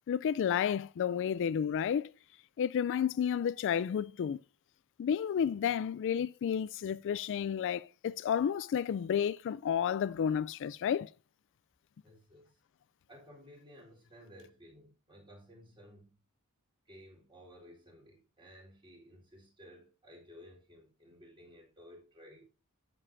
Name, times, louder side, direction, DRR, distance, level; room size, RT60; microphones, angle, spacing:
voice 1, 0.1-2.1 2.6-4.4 5.0-11.1, left 8 dB, 55° left, 0.3 m, -31 dB
voice 2, 12.0-12.6 13.1-16.2 16.9-22.5, equal, 20° right, 3.6 m, -56 dB
11.0 x 7.0 x 2.6 m
head